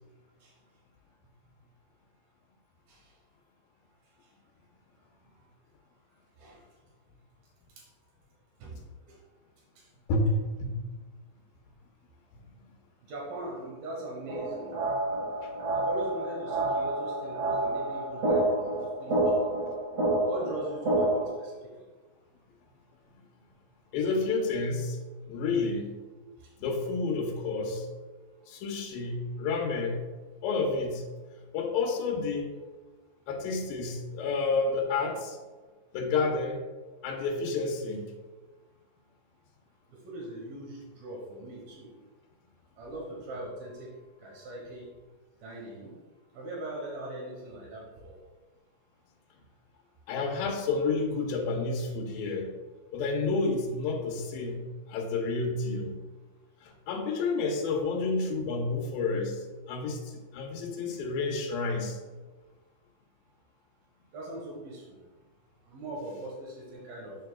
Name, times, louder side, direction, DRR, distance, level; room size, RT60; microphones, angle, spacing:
voice 1, 13.1-14.7 15.7-19.4 20.2-21.5 40.0-41.9 42.8-43.9 44.2-44.9 45.4-45.9 46.3-48.1 64.1-65.0 65.7-67.2, right 1 dB, 80° right, -3 dB, 3.0 m, -40 dB
sound 1, 14.3-21.3, right 2 dB, 50° right, 1.0 m, -28 dB
voice 2, 23.9-25.0 25.2-25.9 26.6-27.9 28.5-30.1 30.4-31.0 31.5-32.5 33.3-35.4 35.9-36.6 37.0-38.1 50.1-52.6 52.9-56.0 56.6-59.4 59.7-62.0, left 3 dB, 80° left, -1 dB, 2.4 m, -30 dB
7.7 x 6.8 x 2.3 m, 1.3 s
omnidirectional pair, 4.3 m